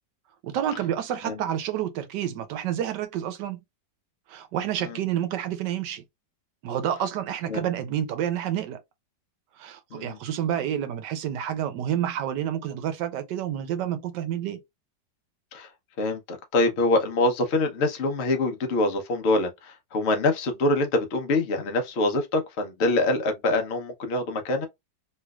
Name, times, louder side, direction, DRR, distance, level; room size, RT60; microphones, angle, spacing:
voice 1, 0.4-3.6 4.3-6.0 6.6-8.8 9.6-14.6, right 10 dB, 75° right, 1.2 m, -29 dB
voice 2, 16.0-24.7, left 2 dB, 50° left, 0.8 m, -25 dB
3.2 x 3.1 x 2.3 m
omnidirectional pair, 1.9 m